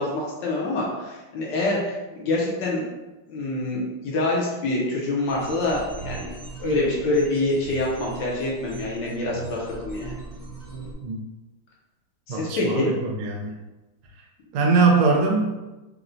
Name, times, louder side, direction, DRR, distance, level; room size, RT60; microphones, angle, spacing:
voice 1, 0.0-2.8 3.3-6.3 6.6-10.1 12.3-12.9, left 2 dB, 70° left, -3 dB, 1.1 m, -26 dB
sound 1, 5.3-10.9, right 3 dB, 50° right, 0.4 m, -38 dB
voice 2, 12.3-13.6 14.1-14.2 14.5-15.6, right 4 dB, 90° right, -1 dB, 1.5 m, -22 dB
4.2 x 2.0 x 2.5 m, 1.1 s
omnidirectional pair, 2.3 m